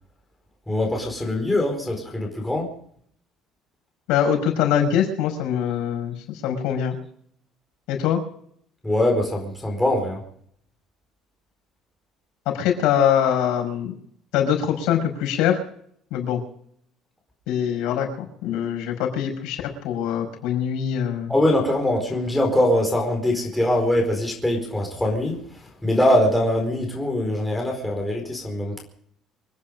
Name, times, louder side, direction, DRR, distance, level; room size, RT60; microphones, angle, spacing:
voice 1, 0.7-2.7 8.8-10.2 21.3-28.8, left 1 dB, 5° left, 0 dB, 4.5 m, -22 dB
voice 2, 4.1-7.0 7.9-8.2 12.5-13.9 14.3-15.6 16.1-16.4 17.5-21.3, left 9 dB, 85° left, 4 dB, 5.5 m, -23 dB
26.0 x 10.0 x 5.3 m, 0.63 s
cardioid pair, 170°, 0 cm